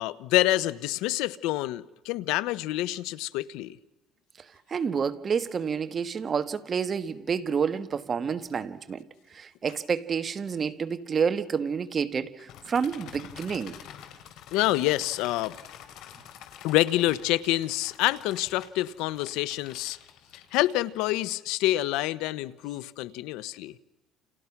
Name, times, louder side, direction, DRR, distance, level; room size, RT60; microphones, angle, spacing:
voice 1, 0.0-3.8 14.5-15.6 16.6-20.0 20.5-23.7, left 16 dB, 85° left, 1.0 m, -27 dB
voice 2, 4.7-9.0 9.3-13.8, right 6 dB, 35° right, 1.6 m, -29 dB
sound 1, 12.5-21.2, left 10 dB, 70° left, 4.1 m, -48 dB
29.5 x 29.0 x 6.0 m
cardioid pair, 120°, 0 cm